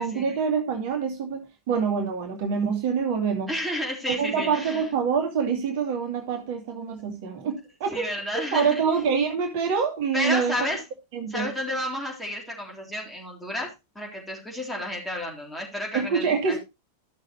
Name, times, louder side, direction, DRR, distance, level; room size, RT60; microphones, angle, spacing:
voice 1, 0.0-3.5 4.1-8.1 8.3-10.6 11.1-11.5 15.9-16.6, right 6 dB, 50° right, 4 dB, 2.0 m, -26 dB
voice 2, 3.5-4.8 7.9-8.8 10.1-10.8 11.3-16.6, left 1 dB, 5° left, -2 dB, 3.8 m, -31 dB
13.5 x 6.6 x 3.0 m, 0.23 s
figure-of-eight pair, 90°, 0 cm